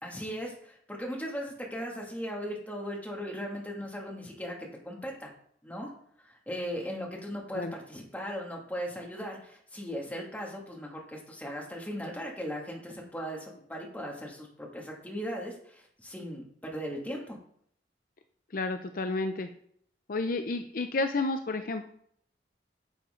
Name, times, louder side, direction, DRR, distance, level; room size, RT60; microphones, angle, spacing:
voice 1, 0.0-4.6 4.8-5.3 5.6-5.9 6.2-17.4, equal, 10° left, -2 dB, 2.3 m, -38 dB
voice 2, 18.5-19.5 20.1-21.8, left 3 dB, 55° left, 7 dB, 0.6 m, -31 dB
10.5 x 7.1 x 3.8 m, 0.64 s
head